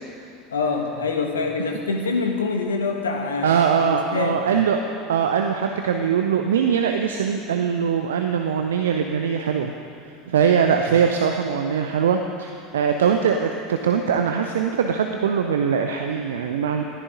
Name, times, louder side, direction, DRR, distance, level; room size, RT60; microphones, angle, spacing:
voice 1, 0.5-3.5 3.8-4.4 10.7-10.8, left 4 dB, 70° left, 4 dB, 1.5 m, -25 dB
voice 2, 3.4-9.7 10.3-16.8, right 7 dB, 65° right, 5 dB, 0.7 m, -22 dB
20.5 x 14.0 x 3.9 m, 2.4 s
figure-of-eight pair, 75°, 0 cm